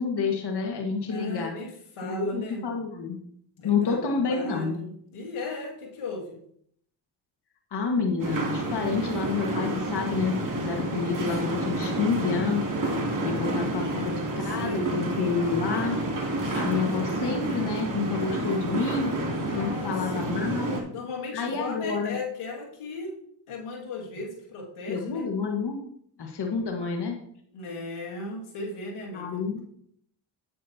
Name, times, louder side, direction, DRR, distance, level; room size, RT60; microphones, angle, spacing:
voice 1, 0.0-1.5 2.0-3.2 3.6-4.8 7.7-12.6 13.2-16.0 16.5-19.1 19.6-20.8 21.3-22.2 24.9-25.8 26.2-27.2 29.1-29.6, left 5 dB, 50° left, 2 dB, 1.8 m, -28 dB
voice 2, 1.0-2.6 3.6-4.0 4.3-6.4 13.1-15.0 19.4-20.4 20.9-23.2 23.5-25.3 27.5-29.4, left 2 dB, 80° left, -1 dB, 2.3 m, -37 dB
sound 1, 8.2-20.8, right 1 dB, 40° right, 2.9 m, -30 dB
9.7 x 8.7 x 2.9 m, 0.65 s
supercardioid pair, 60°, 50 cm